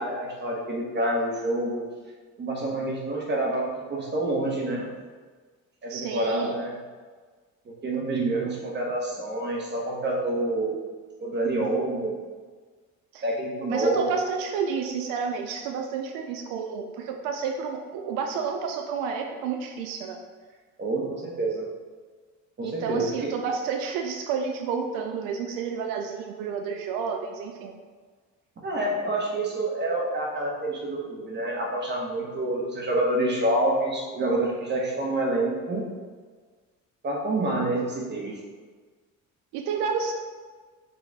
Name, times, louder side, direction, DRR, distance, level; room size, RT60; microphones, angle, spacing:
voice 1, 0.0-1.8 2.4-4.9 5.8-6.7 7.8-10.7 11.2-12.2 13.2-14.2 20.8-21.6 22.6-23.3 28.6-35.8 37.0-38.4, right 1 dB, 30° right, -2 dB, 1.2 m, -27 dB
voice 2, 5.9-6.6 13.1-13.2 13.7-20.2 22.6-27.7 39.5-40.1, right 6 dB, 90° right, 4 dB, 0.5 m, -30 dB
5.5 x 2.4 x 4.0 m, 1.5 s
cardioid pair, 105°, 33 cm